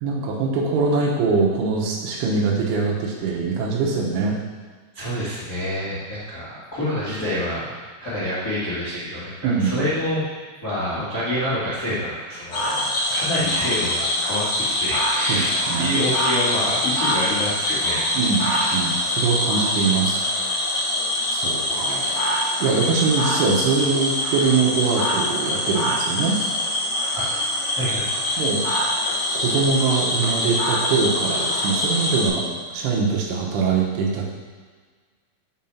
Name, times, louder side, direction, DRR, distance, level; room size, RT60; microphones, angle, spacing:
voice 1, 0.0-4.4 9.4-9.8 15.3-15.9 18.1-20.2 21.3-22.1 22.6-26.4 28.4-28.7 29.0-34.3, right 4 dB, 75° right, -2 dB, 3.5 m, -23 dB
voice 2, 4.9-10.2 10.6-15.5 15.8-18.6 27.1-27.2 27.7-28.4, equal, 35° left, -11 dB, 1.4 m, -27 dB
Cricket / Frog, 12.5-32.3, left 1 dB, 80° left, 1.2 m, -24 dB
9.2 x 5.0 x 5.7 m, 1.5 s
omnidirectional pair, 5.8 m